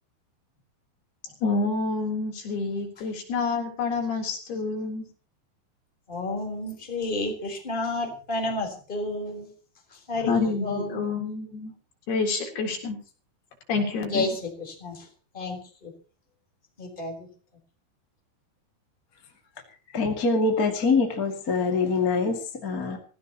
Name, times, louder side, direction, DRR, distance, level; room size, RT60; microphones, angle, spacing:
voice 1, 1.4-5.0 10.2-11.7 12.1-13.0 13.7-14.3, left 4 dB, 65° left, 1 dB, 5.6 m, -28 dB
voice 2, 6.1-9.5 10.1-10.3 10.6-11.1 14.1-15.1 15.3-15.9 16.8-17.3, left 2 dB, 10° left, 2 dB, 3.9 m, -31 dB
voice 3, 19.9-23.0, left 4 dB, 30° left, 2 dB, 1.9 m, -24 dB
25.5 x 15.5 x 3.0 m, 0.37 s
omnidirectional pair, 5.0 m